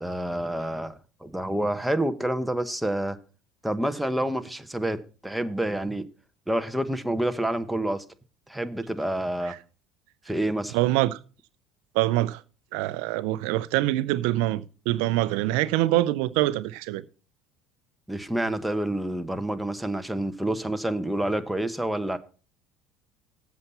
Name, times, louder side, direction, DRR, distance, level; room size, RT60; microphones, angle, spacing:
voice 1, 0.0-3.2 3.6-5.0 5.2-6.0 6.5-8.0 8.5-9.5 10.2-10.8 18.1-22.2, right 1 dB, 5° right, 1.0 m, -28 dB
voice 2, 10.7-11.2 11.9-12.4 12.7-17.0, right 16 dB, 75° right, 0.5 m, -25 dB
8.0 x 5.6 x 6.9 m
supercardioid pair, 85°, 0 cm